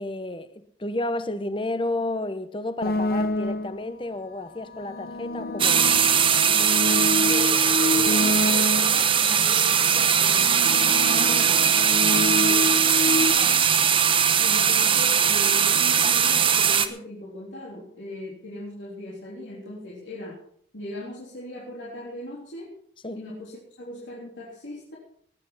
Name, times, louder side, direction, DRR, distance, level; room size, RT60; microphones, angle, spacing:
voice 1, 0.0-6.0 11.1-11.6 23.0-23.2, left 2 dB, 25° left, 1.0 m, -32 dB
sound 1, 2.8-3.9 4.7-9.2 9.9-13.3, left 2 dB, 55° left, 0.9 m, -28 dB
sound 2, 5.6-16.9, right 7 dB, 30° right, 0.9 m, -20 dB
voice 2, 7.3-10.8 11.2-13.7 14.4-20.4 20.7-22.7 23.1-25.0, left 1 dB, 85° left, 3.5 m, -39 dB
19.5 x 8.6 x 5.7 m
head